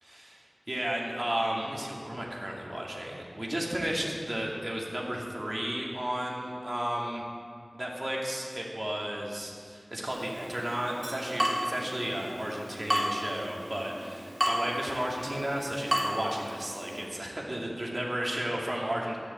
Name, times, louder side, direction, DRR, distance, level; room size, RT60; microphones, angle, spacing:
voice 1, 0.0-7.2 7.7-19.2, right 1 dB, 45° right, -3 dB, 2.5 m, -33 dB
Water tap faucet / Drip, 10.1-17.1, equal, 25° right, 2.0 m, -33 dB
14.0 x 6.2 x 8.3 m, 2.2 s
wide cardioid pair, 45°, 0 cm